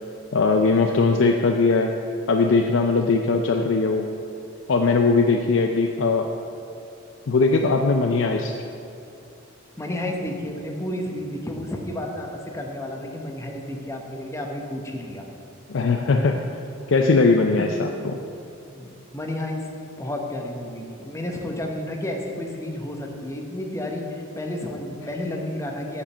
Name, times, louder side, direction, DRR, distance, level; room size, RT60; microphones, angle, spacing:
voice 1, 0.3-1.9 2.3-4.1 4.7-6.3 7.3-8.5 15.7-16.4 16.9-18.2, left 3 dB, 65° left, 4 dB, 0.5 m, -20 dB
voice 2, 9.8-15.2 17.6-17.7 18.7-19.6 20.0-26.0, left 1 dB, 15° left, 1 dB, 0.9 m, -31 dB
8.5 x 5.0 x 7.1 m, 2.6 s
head